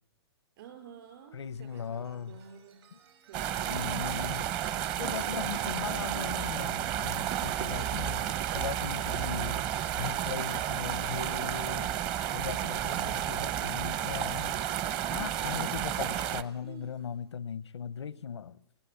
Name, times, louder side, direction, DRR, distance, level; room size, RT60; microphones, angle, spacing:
voice 1, 0.6-2.8 3.2-4.0 4.7-6.3 7.4-8.0 12.2-13.8 15.1-15.8 16.5-17.1, right 8 dB, 55° right, 4.8 m, -50 dB
voice 2, 1.3-2.3 2.9-3.0 3.7-4.5 5.0-8.3 8.5-9.7 10.0-12.0 12.3-14.6 15.1-18.6, left 7 dB, 90° left, 0.8 m, -38 dB
Chime, 1.3-17.2, right 8 dB, 70° right, 6.3 m, -59 dB
sound 1, 3.3-16.4, right 11 dB, 30° right, 0.9 m, -32 dB
19.5 x 19.5 x 8.3 m
hypercardioid pair, 130°, 14 cm